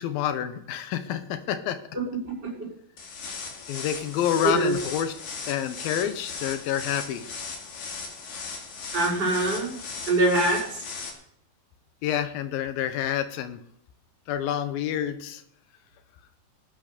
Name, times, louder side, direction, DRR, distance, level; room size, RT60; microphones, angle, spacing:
voice 1, 0.0-1.8 3.7-5.1 5.5-7.2 12.0-13.6 14.3-15.4, left 10 dB, 90° left, 11 dB, 2.8 m, -28 dB
voice 2, 1.9-2.7 4.4-4.8 8.9-9.8 10.1-10.8, right 2 dB, 30° right, -2 dB, 5.5 m, -24 dB
sound 1, 3.0-11.1, left 5 dB, 60° left, 3.5 m, -37 dB
19.0 x 8.8 x 6.7 m, 0.70 s
omnidirectional pair, 4.0 m